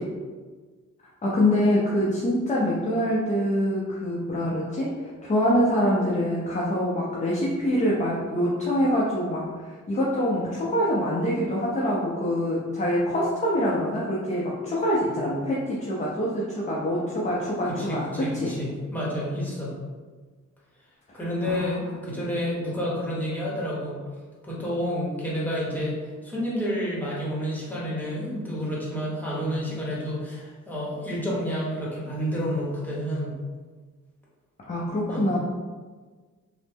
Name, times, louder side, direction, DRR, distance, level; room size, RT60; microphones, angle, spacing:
voice 1, 1.2-18.5 21.4-21.7 34.7-35.4, equal, 25° left, -5 dB, 0.5 m, -25 dB
voice 2, 17.7-19.8 21.1-24.1 24.4-26.0 26.2-33.4 35.1-35.3, equal, 5° left, -7 dB, 0.9 m, -29 dB
3.1 x 2.0 x 3.3 m, 1.4 s
wide cardioid pair, 125°, 32 cm